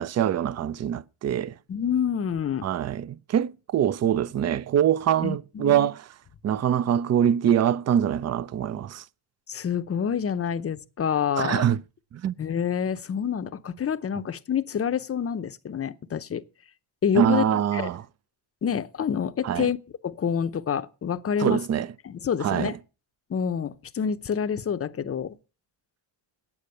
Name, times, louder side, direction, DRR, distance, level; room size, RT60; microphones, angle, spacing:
voice 1, 0.0-1.5 2.6-6.0 6.4-9.0 11.4-11.8 12.1-12.3 17.1-18.0 19.4-19.7 21.4-21.9 22.4-22.7, right 9 dB, 35° right, 0.5 m, -24 dB
voice 2, 1.7-2.7 5.2-5.9 9.5-11.7 12.4-16.4 17.0-17.9 18.6-19.8 20.0-21.6 22.0-22.8 23.3-25.4, left 7 dB, 30° left, 0.7 m, -27 dB
8.7 x 8.6 x 6.5 m
cardioid pair, 100°, 47 cm